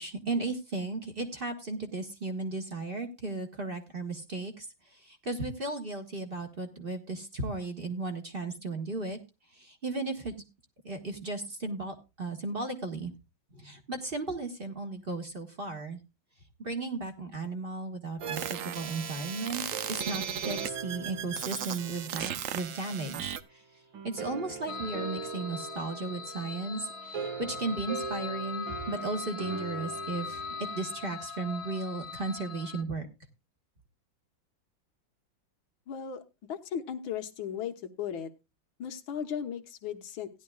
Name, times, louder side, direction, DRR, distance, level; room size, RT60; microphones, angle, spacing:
voice 1, 0.0-9.2 9.5-10.3 10.8-13.1 13.5-16.0 16.6-23.6 24.0-33.1, right 3 dB, 30° right, 4 dB, 1.4 m, -35 dB
sound 1, 18.2-23.4, right 9 dB, 65° right, 0.8 m, -36 dB
sound 2, 18.2-22.8 23.9-31.1, right 5 dB, 90° right, 2.4 m, -42 dB
sound 3, 24.7-32.8, left 5 dB, 35° left, 1.4 m, -41 dB
voice 2, 35.9-36.2 36.5-38.3 38.8-40.3, left 8 dB, 90° left, 5 dB, 1.9 m, -36 dB
16.5 x 11.0 x 2.3 m, 0.26 s
omnidirectional pair, 2.1 m